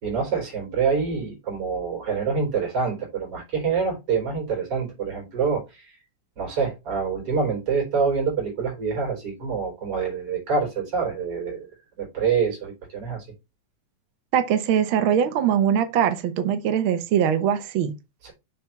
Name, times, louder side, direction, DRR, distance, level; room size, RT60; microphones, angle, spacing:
voice 1, 0.0-5.9 6.4-11.7 12.0-13.3 18.2-18.3, right 5 dB, 45° right, 4.2 m, -26 dB
voice 2, 14.3-17.9, right 9 dB, 75° right, 1.2 m, -22 dB
7.0 x 3.4 x 5.7 m
omnidirectional pair, 3.5 m